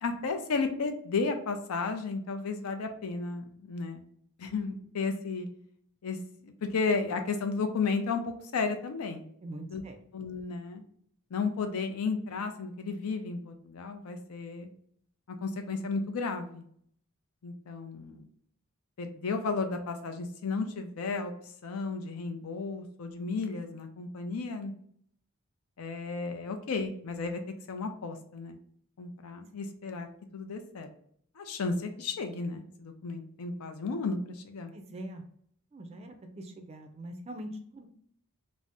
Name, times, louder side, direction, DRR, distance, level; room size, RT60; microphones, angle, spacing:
voice 1, 0.0-4.1 4.4-5.5 6.0-6.2 6.4-8.2 8.5-9.2 9.7-9.8 10.1-10.8 11.3-14.7 15.4-16.6 17.4-18.2 19.0-21.3 21.6-24.7 25.8-27.4 27.7-28.6 29.0-30.1 30.3-30.9 31.4-34.7, left 4 dB, 85° left, 6 dB, 0.5 m, -33 dB
voice 2, 9.4-10.0 34.7-35.2 35.7-37.9, right 1 dB, 30° right, 6 dB, 0.3 m, -43 dB
2.6 x 2.0 x 3.4 m, 0.64 s
head